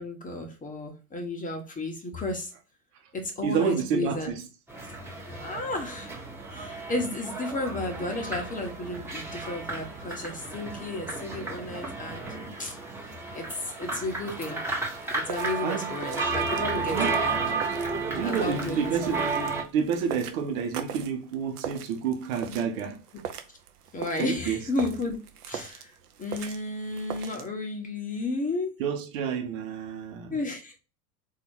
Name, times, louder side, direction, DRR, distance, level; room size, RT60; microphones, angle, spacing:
voice 1, 0.0-2.5 3.1-4.3 5.4-6.2 6.5-12.2 12.6-12.8 13.0-14.6 15.1-17.4 18.2-19.2 22.4-22.9 23.9-25.2 25.5-25.9 26.2-28.8 30.3-30.8, left 2 dB, 15° left, 1.1 m, -33 dB
voice 2, 3.4-4.4 15.6-16.0 16.9-17.2 18.1-19.3 19.7-23.0 24.2-24.6 28.8-30.4, right 7 dB, 60° right, 1.2 m, -29 dB
sound 1, 4.7-19.6, right 3 dB, 5° right, 1.3 m, -32 dB
sound 2, 14.7-27.5, right 8 dB, 75° right, 0.8 m, -42 dB
4.1 x 2.8 x 4.6 m
figure-of-eight pair, 85°, 46 cm